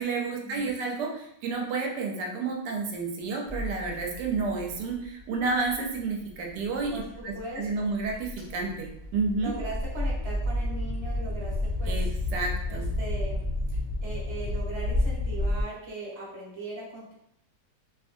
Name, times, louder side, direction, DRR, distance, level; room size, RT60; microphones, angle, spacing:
voice 1, 0.0-9.5 11.9-12.1 12.3-12.9, right 4 dB, 75° right, 1 dB, 1.1 m, -30 dB
sound 1, 3.5-15.6, left 1 dB, 45° left, 0.7 m, -31 dB
voice 2, 7.3-7.9 9.4-12.1 12.7-13.5 14.0-17.1, right 2 dB, 25° right, -6 dB, 0.6 m, -39 dB
2.6 x 2.5 x 2.5 m, 0.76 s
omnidirectional pair, 1.8 m